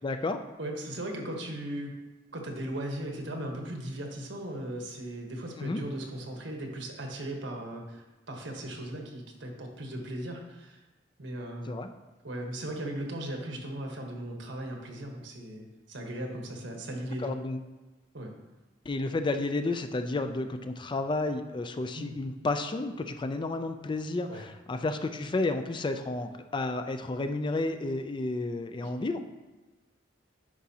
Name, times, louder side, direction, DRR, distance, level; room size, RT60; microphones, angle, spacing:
voice 1, 0.0-0.4 5.6-5.8 11.7-11.9 17.2-17.6 18.9-29.2, left 2 dB, 25° left, 8 dB, 0.4 m, -31 dB
voice 2, 0.6-2.0 2.3-10.8 11.2-11.8 12.2-17.4 18.1-18.3 21.9-22.1 24.3-24.4 28.8-28.9, right 1 dB, 80° right, 2 dB, 1.2 m, -37 dB
9.9 x 4.8 x 2.8 m, 1.2 s
head